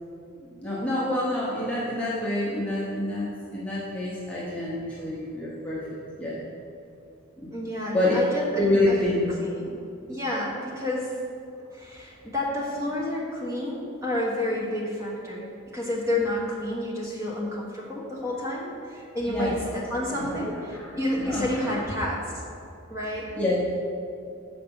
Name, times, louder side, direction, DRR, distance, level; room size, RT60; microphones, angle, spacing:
voice 1, 0.3-6.4 7.4-7.5 7.9-8.1 8.5-9.3 19.3-19.7 20.1-22.1 23.0-23.6, left 1 dB, 5° left, -8 dB, 1.0 m, -28 dB
voice 2, 7.5-9.0 9.4-9.8 10.1-11.1 11.7-15.4 15.7-22.2 22.9-23.3, left 1 dB, 15° right, -5 dB, 1.2 m, -30 dB
6.9 x 5.1 x 5.3 m, 2.5 s
head